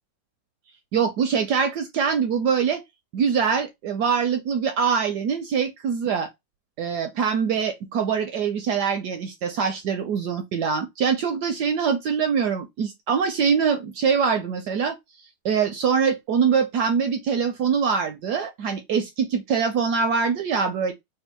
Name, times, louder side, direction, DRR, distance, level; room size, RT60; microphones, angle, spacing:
voice 1, 0.9-2.8 3.1-6.3 6.8-15.0 15.4-20.9, right 6 dB, 75° right, 1.0 m, -23 dB
3.5 x 2.2 x 4.3 m
omnidirectional pair, 2.2 m